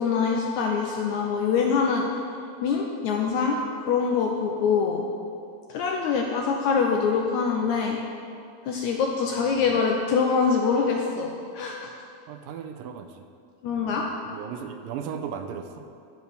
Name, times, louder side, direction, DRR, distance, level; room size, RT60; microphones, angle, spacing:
voice 1, 0.0-2.1 2.6-3.6 3.9-5.0 5.7-8.0 8.6-11.9 13.6-14.1, left 5 dB, 80° left, 1 dB, 1.7 m, -24 dB
voice 2, 12.3-13.2 13.7-14.0 14.3-15.9, right 7 dB, 85° right, 7 dB, 2.2 m, -36 dB
12.0 x 4.6 x 6.9 m, 2.4 s
omnidirectional pair, 3.9 m